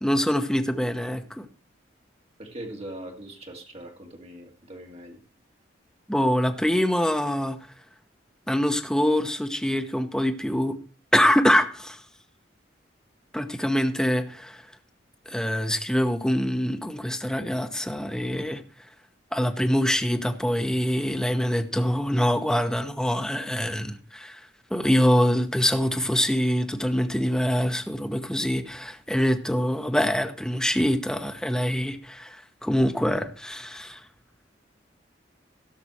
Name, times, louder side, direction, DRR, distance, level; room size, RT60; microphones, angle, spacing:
voice 1, 0.0-1.5 6.1-7.6 8.5-10.8 11.1-12.0 13.3-14.6 15.3-18.6 19.3-24.4 24.7-34.0, equal, 5° left, 0.9 m, -24 dB
voice 2, 2.4-5.2, right 1 dB, 35° right, 2.3 m, -41 dB
16.5 x 6.1 x 4.4 m
head